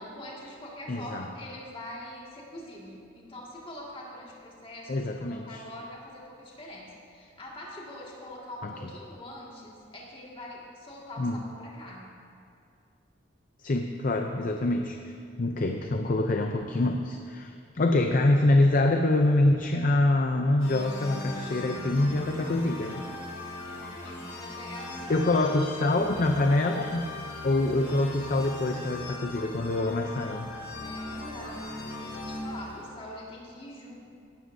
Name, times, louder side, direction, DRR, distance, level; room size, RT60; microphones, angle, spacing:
voice 1, 0.0-12.2 23.7-26.4 30.8-34.1, left 1 dB, 30° left, -4 dB, 2.0 m, -44 dB
voice 2, 0.9-1.3 4.9-5.6 11.2-11.4 13.6-15.0 15.4-23.1 25.1-27.1 27.4-30.5, left 2 dB, 45° left, 4 dB, 0.5 m, -25 dB
sound 1, 20.6-32.9, left 2 dB, 75° left, 2.6 m, -39 dB
17.0 x 12.5 x 2.7 m, 2.4 s
head